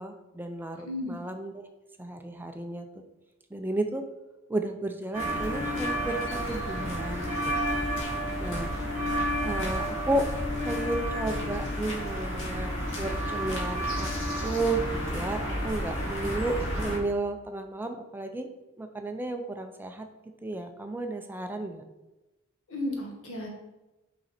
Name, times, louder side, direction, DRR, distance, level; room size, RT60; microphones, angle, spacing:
voice 1, 0.0-1.6 2.0-2.9 3.5-4.0 4.5-7.7 8.4-8.7 9.4-10.3 10.6-12.7 13.0-14.1 14.4-18.5 18.8-20.1 20.4-21.8, right 2 dB, 10° right, 6 dB, 0.4 m, -33 dB
voice 2, 0.8-1.2 22.7-23.5, left 1 dB, 85° left, 0 dB, 1.6 m, -33 dB
sound 1, 5.1-17.0, equal, 65° left, 2.0 m, -31 dB
5.6 x 5.1 x 4.2 m, 1.0 s
head